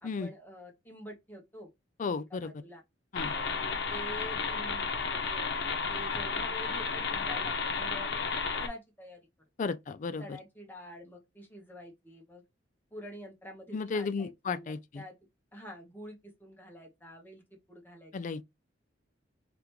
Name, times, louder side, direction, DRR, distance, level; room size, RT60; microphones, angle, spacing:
voice 1, 0.0-1.7 2.3-2.8 3.2-5.5 5.9-9.2 10.2-12.4 12.9-15.1 15.5-18.1, equal, 10° left, 1.3 m, -47 dB
voice 2, 2.0-2.5 3.1-3.4 9.6-10.4 13.7-15.0 18.1-18.4, left 4 dB, 45° left, 0.4 m, -34 dB
sound 1, 3.1-8.7, left 5 dB, 65° left, 0.9 m, -32 dB
3.7 x 3.4 x 3.1 m
head